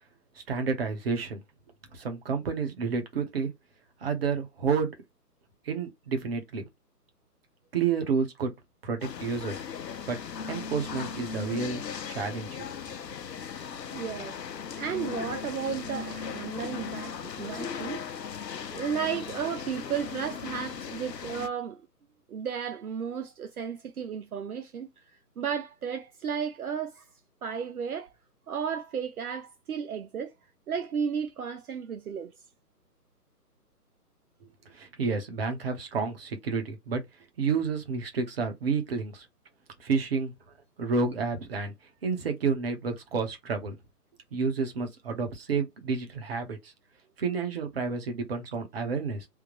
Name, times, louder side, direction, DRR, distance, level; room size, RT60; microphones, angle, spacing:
voice 1, 0.5-1.4 1.9-3.5 4.0-4.9 5.6-6.6 7.7-8.5 8.8-9.6 10.1-10.2 10.5-11.8 12.1-12.7 34.7-37.0 37.4-39.3 39.8-40.3 40.8-41.7 42.0-43.7 44.3-46.7 47.2-49.3, right 5 dB, 40° right, 1.1 m, -30 dB
sound 1, 9.0-21.5, left 6 dB, 90° left, 0.7 m, -38 dB
voice 2, 13.9-14.4 14.8-18.0 18.7-21.8 22.3-27.1 27.4-28.1 28.5-30.3 30.7-32.3, right 7 dB, 65° right, 0.6 m, -33 dB
3.5 x 2.2 x 3.1 m
hypercardioid pair, 150°, 48 cm